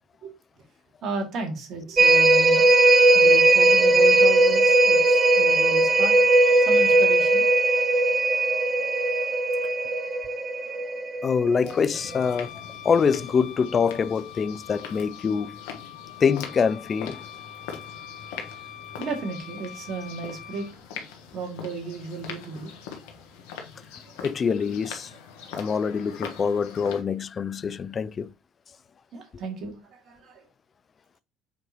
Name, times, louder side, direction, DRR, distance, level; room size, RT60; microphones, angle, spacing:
voice 1, 1.0-2.6 3.1-6.2 6.6-7.5 17.6-17.7 19.0-20.8 21.3-22.8 24.0-24.2 25.3-25.5 29.1-30.5, right 3 dB, 60° right, 2.4 m, -35 dB
sound 1, 2.0-11.7 12.1-12.2, right 2 dB, 35° right, 0.8 m, -19 dB
voice 2, 11.2-15.6 16.2-17.2 24.2-25.1 25.5-28.3, left 6 dB, 40° left, 0.4 m, -25 dB
sound 2, 11.6-27.0, left 7 dB, 80° left, 1.4 m, -42 dB
Wind instrument woodwind instrument, 11.9-20.7, left 10 dB, 60° left, 1.0 m, -44 dB
7.2 x 4.6 x 3.0 m
hypercardioid pair, 65°, 0 cm